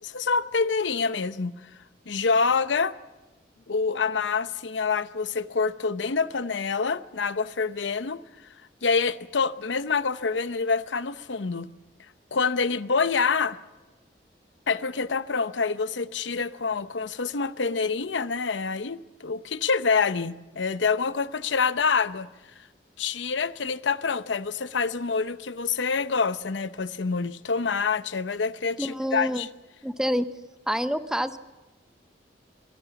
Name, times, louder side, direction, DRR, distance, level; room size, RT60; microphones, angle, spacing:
voice 1, 0.0-1.5 2.1-3.0 3.7-8.2 8.8-11.7 12.3-13.6 14.7-22.3 23.0-29.5, left 5 dB, 90° left, 0.8 m, -26 dB
voice 2, 28.8-29.5 29.8-30.3 30.7-31.4, equal, 5° right, 0.7 m, -27 dB
25.0 x 18.5 x 7.0 m
head